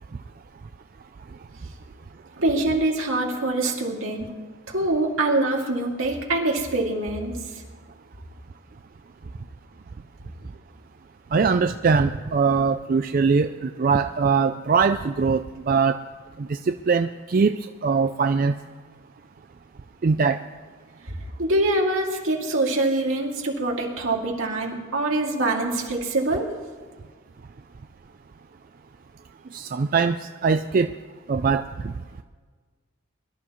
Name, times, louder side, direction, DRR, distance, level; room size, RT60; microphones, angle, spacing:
voice 1, 2.4-4.3 4.7-7.4 21.4-26.5, right 2 dB, 75° right, -1 dB, 2.4 m, -24 dB
voice 2, 11.3-16.0 16.4-18.6 20.0-20.4 29.5-30.9 31.3-31.9, right 5 dB, 40° right, 8 dB, 0.3 m, -22 dB
23.0 x 12.0 x 3.1 m, 1.5 s
head